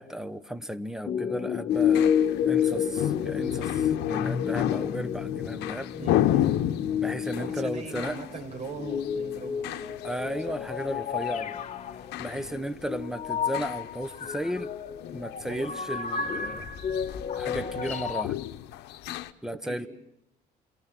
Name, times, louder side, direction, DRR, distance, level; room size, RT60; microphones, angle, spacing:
voice 1, 0.0-2.1 2.5-5.9 6.9-8.2 10.0-11.5 12.2-14.7 15.1-16.7 17.3-18.4 19.4-19.9, equal, 5° right, 0.9 m, -35 dB
sound 1, 1.0-8.2 8.7-18.2, left 8 dB, 45° left, 1.5 m, -30 dB
sound 2, 1.7-19.3, left 12 dB, 85° left, 0.9 m, -33 dB
voice 2, 7.4-10.6 12.3-12.5 15.4-15.7 19.5-19.9, right 4 dB, 45° right, 6.8 m, -40 dB
28.0 x 23.0 x 6.0 m
cardioid pair, 110°, 17 cm